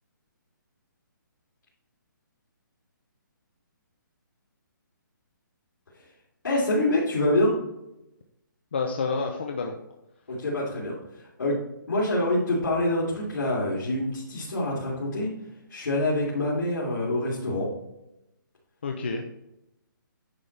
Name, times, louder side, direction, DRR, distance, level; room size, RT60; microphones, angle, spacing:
voice 1, 6.4-7.6 10.3-11.6 11.9-15.3 15.7-17.7, left 1 dB, 75° left, -6 dB, 2.7 m, -26 dB
voice 2, 8.7-9.8 18.8-19.2, left 4 dB, 30° left, 2 dB, 0.5 m, -29 dB
9.7 x 5.3 x 3.3 m, 0.89 s
hypercardioid pair, 180°, 11 cm